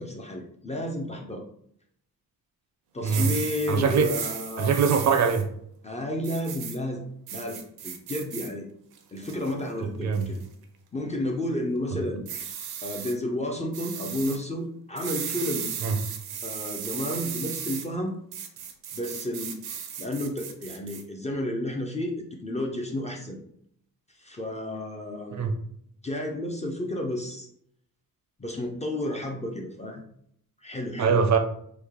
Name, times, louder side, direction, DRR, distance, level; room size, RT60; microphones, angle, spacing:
voice 1, 0.0-1.4 2.9-5.0 5.8-7.0 7.3-8.7 9.1-10.4 10.9-12.2 12.8-15.7 16.4-18.2 18.9-19.5 20.0-23.4 24.2-25.4 26.0-27.5 28.4-30.0 30.6-31.2, left 1 dB, 20° left, 0.4 m, -32 dB
sound 1, 3.0-5.4 6.2-6.8 7.3-8.5 9.0-9.5 10.1-10.4 12.3-13.1 13.7-14.4 15.0-17.9 18.3-21.0, right 8 dB, 90° right, 0.6 m, -36 dB
voice 2, 3.7-4.1 4.6-5.5 10.0-10.3 15.8-16.0 25.3-25.5 31.0-31.4, right 6 dB, 50° right, 0.4 m, -22 dB
3.2 x 2.7 x 3.6 m
wide cardioid pair, 160°, 37 cm